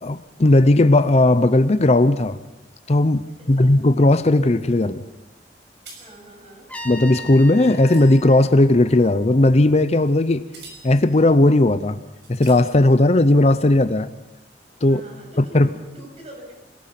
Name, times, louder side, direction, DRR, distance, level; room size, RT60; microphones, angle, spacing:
voice 1, 0.0-2.4 2.9-5.0 6.8-10.4 10.8-12.0 12.3-14.1 14.8-15.0 15.4-15.7, left 2 dB, 40° left, 12 dB, 0.7 m, -16 dB
voice 2, 3.3-3.7 6.0-6.7 14.9-16.6, right 1 dB, 35° right, 0 dB, 7.6 m, -43 dB
sound 1, 5.9-8.5 9.9-10.1 10.5-11.2 11.7-11.8 12.2-12.6, right 3 dB, 85° right, 6.1 m, -45 dB
Trumpet, 6.7-9.6, left 1 dB, 10° left, 1.8 m, -39 dB
27.0 x 18.0 x 5.9 m, 0.97 s
head